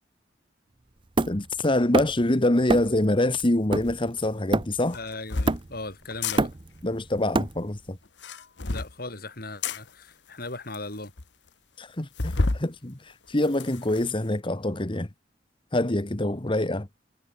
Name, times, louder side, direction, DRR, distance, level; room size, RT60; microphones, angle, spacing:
Hammer, 1.2-2.3 2.7-3.0 3.4-5.0 5.5-5.9 6.2-7.9, right 2 dB, 30° right, 0.7 m, -27 dB
voice 1, 1.3-5.0 6.8-8.0 11.8-15.1 15.7-16.9, left 1 dB, 30° left, 1.4 m, -25 dB
sound 1, 3.8-4.0 4.9-5.6 6.1-6.4 8.1-8.9 9.6-9.8 10.5-10.6 10.7-10.8 11.2-11.3 12.2-12.6 13.1-14.1, left 3 dB, 75° left, 1.3 m, -29 dB
voice 2, 4.9-6.5 8.6-11.1 16.5-16.6, left 2 dB, 55° left, 5.1 m, -38 dB
head